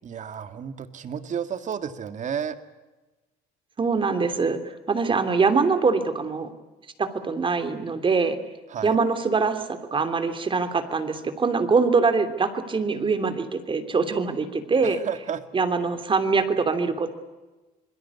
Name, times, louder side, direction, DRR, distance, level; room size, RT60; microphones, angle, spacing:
voice 1, 0.0-2.6 8.7-9.0 14.8-15.4, right 8 dB, 45° right, 10 dB, 2.1 m, -32 dB
voice 2, 3.8-4.6 4.9-6.5 7.0-8.4 8.8-9.6 9.9-15.0 15.5-17.1, right 4 dB, 30° right, 9 dB, 3.1 m, -23 dB
26.5 x 21.5 x 8.4 m, 1.2 s
cardioid pair, 110°, 17 cm